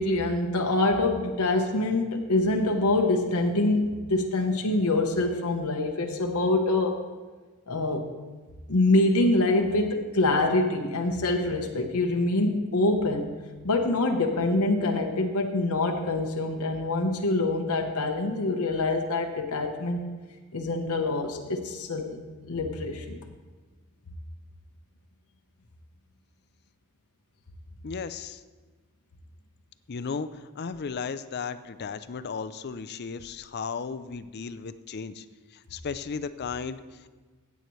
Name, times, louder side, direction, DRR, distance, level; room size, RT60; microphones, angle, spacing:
voice 1, 0.0-7.0 7.7-8.0 8.7-13.3 13.6-20.1 20.5-22.2 22.5-23.2, left 2 dB, 80° left, 3 dB, 1.0 m, -25 dB
voice 2, 27.8-28.4 29.9-35.3 35.5-37.1, left 5 dB, 45° left, 13 dB, 0.4 m, -35 dB
15.5 x 8.3 x 3.1 m, 1.3 s
head